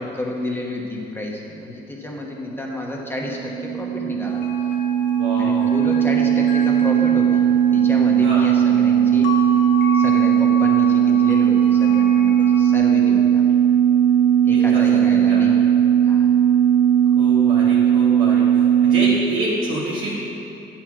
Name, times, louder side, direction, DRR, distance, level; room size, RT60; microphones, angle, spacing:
voice 1, 0.0-4.4 5.4-7.4 7.7-9.3 9.9-13.4 14.4-15.6 16.0-16.3, left 1 dB, 10° left, -2 dB, 1.2 m, -30 dB
sound 1, 2.9-19.1, right 9 dB, 20° right, 1.4 m, -17 dB
sound 2, 4.3-12.8, left 5 dB, 70° left, 0.9 m, -34 dB
voice 2, 5.2-5.8 8.2-8.4 14.5-15.0 15.3-15.4 17.2-20.1, right 1 dB, 85° right, -8 dB, 1.3 m, -28 dB
8.5 x 4.6 x 6.0 m, 2.8 s
cardioid pair, 80°, 20 cm